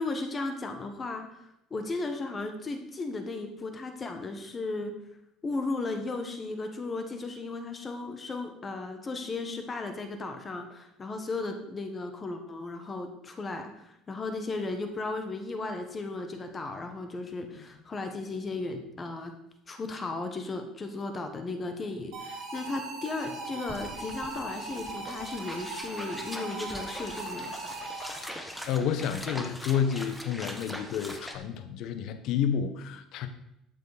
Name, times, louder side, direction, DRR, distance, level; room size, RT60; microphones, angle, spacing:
voice 1, 0.0-5.0 5.4-19.3 19.7-27.8, left 3 dB, 25° left, 6 dB, 1.5 m, -35 dB
sound 1, 22.1-28.4, right 3 dB, 55° right, 5.0 m, -39 dB
sound 2, 23.2-23.3 23.4-31.4, equal, ahead, 1.4 m, -42 dB
voice 2, 28.2-33.3, left 8 dB, 65° left, 10 dB, 1.2 m, -30 dB
12.5 x 8.3 x 4.2 m, 0.85 s
cardioid pair, 120°, 0 cm